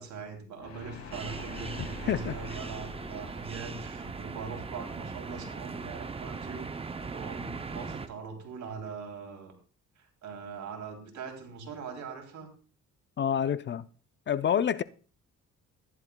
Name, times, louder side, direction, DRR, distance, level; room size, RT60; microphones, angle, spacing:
voice 1, 0.0-9.6 9.9-12.5, right 5 dB, 70° right, 3.1 m, -42 dB
sound 1, 0.6-5.7, left 3 dB, 55° left, 2.3 m, -46 dB
sound 2, 1.1-8.1, right 4 dB, 20° right, 0.5 m, -39 dB
voice 2, 1.8-2.3 13.2-13.8 14.3-14.8, left 8 dB, 40° left, 0.4 m, -28 dB
14.5 x 11.0 x 2.2 m
cardioid pair, 90°, 30 cm